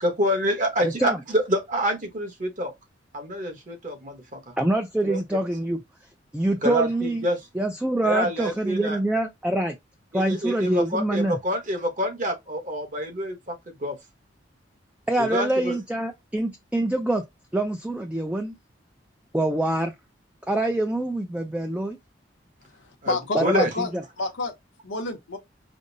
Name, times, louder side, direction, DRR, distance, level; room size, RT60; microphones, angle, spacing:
voice 1, 0.0-2.7 3.1-4.5 5.0-5.2 6.6-7.4 8.0-9.0 10.1-14.0 15.2-15.8 23.0-23.7, equal, 40° right, 1.1 m, -27 dB
voice 2, 0.8-1.2 4.6-5.8 6.3-7.3 7.5-9.8 10.1-11.4 15.1-17.2 17.5-18.6 19.3-19.9 20.5-22.0 23.3-24.0, right 1 dB, 5° right, 0.4 m, -25 dB
voice 3, 22.6-23.9 24.2-24.5 24.8-25.4, left 3 dB, 80° left, 0.8 m, -29 dB
5.1 x 2.0 x 2.6 m
head